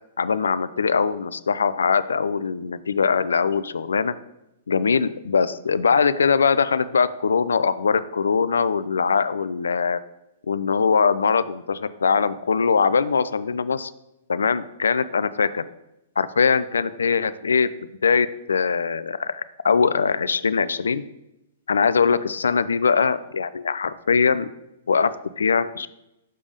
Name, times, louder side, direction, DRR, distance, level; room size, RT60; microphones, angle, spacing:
voice 1, 0.2-4.1 4.7-10.0 10.5-13.9 14.3-15.6 16.2-17.7 18.0-21.0 21.7-24.5 24.9-25.9, left 5 dB, 85° left, 15 dB, 0.3 m, -21 dB
6.7 x 3.5 x 5.0 m, 0.87 s
hypercardioid pair, 125°, 0 cm